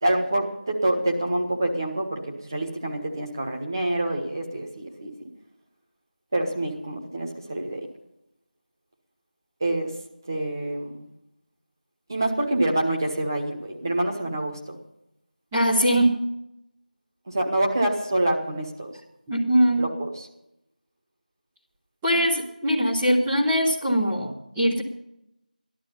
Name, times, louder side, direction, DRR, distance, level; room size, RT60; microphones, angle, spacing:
voice 1, 0.0-5.1 6.3-7.9 9.6-9.9 10.3-11.0 12.1-14.7 17.3-18.9 19.8-20.1, right 1 dB, 25° right, 1 dB, 1.5 m, -26 dB
voice 2, 15.5-16.2 19.3-19.9 22.0-24.8, equal, 5° right, -9 dB, 0.6 m, -21 dB
15.0 x 11.5 x 5.6 m, 0.84 s
figure-of-eight pair, 175°, 5 cm